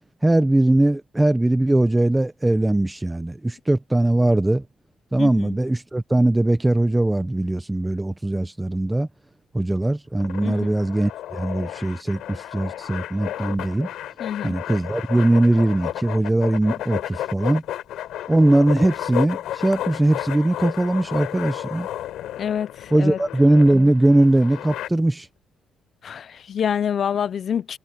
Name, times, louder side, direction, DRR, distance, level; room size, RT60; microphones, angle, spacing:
voice 1, 0.2-4.6 5.1-9.1 9.5-13.9 14.4-17.6 18.3-21.9 22.9-25.3, right 1 dB, 10° right, 0.9 m, -20 dB
voice 2, 5.2-5.6 10.4-10.7 14.2-14.6 22.4-23.2 26.0-27.8, left 8 dB, 55° left, 0.6 m, -27 dB
sound 1, 10.2-24.9, left 12 dB, 85° left, 4.1 m, -33 dB
cardioid pair, 90°, 0 cm